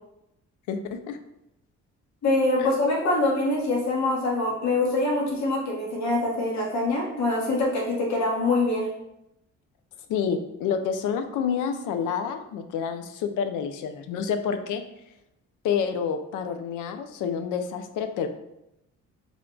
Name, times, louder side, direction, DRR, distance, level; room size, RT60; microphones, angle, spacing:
voice 1, 0.7-1.2 2.6-2.7 10.1-14.8 15.6-18.3, left 7 dB, 80° left, 8 dB, 0.5 m, -28 dB
voice 2, 2.2-8.9, left 2 dB, 65° left, -2 dB, 1.2 m, -24 dB
3.5 x 2.2 x 3.7 m, 0.84 s
cardioid pair, 90°, 30 cm